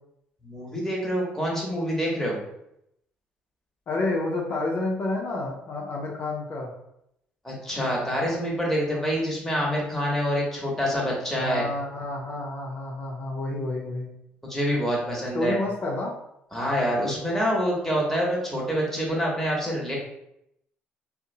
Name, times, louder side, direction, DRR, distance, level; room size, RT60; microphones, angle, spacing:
voice 1, 0.4-2.4 7.4-11.6 14.4-15.6 16.5-20.0, equal, 5° left, -4 dB, 1.0 m, -26 dB
voice 2, 3.9-6.7 11.3-14.1 15.3-16.1, left 2 dB, 50° left, -2 dB, 0.5 m, -29 dB
2.6 x 2.0 x 2.7 m, 0.79 s
supercardioid pair, 70°, 4 cm